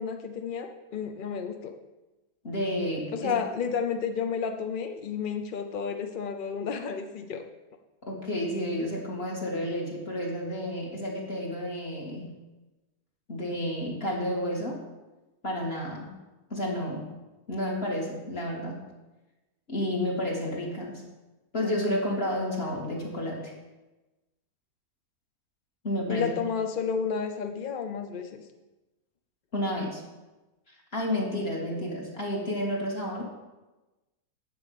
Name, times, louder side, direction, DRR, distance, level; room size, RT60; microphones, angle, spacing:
voice 1, 0.0-1.7 3.1-7.4 26.1-28.4, left 6 dB, 55° left, 6 dB, 0.5 m, -31 dB
voice 2, 2.4-3.3 8.0-12.3 13.3-14.8 15.4-16.1 16.5-17.1 17.5-18.8 19.7-21.0 21.5-23.5 25.8-26.3 29.5-30.0 30.9-33.3, left 1 dB, 35° left, -3 dB, 2.8 m, -31 dB
7.7 x 7.7 x 8.4 m, 1.1 s
omnidirectional pair, 1.7 m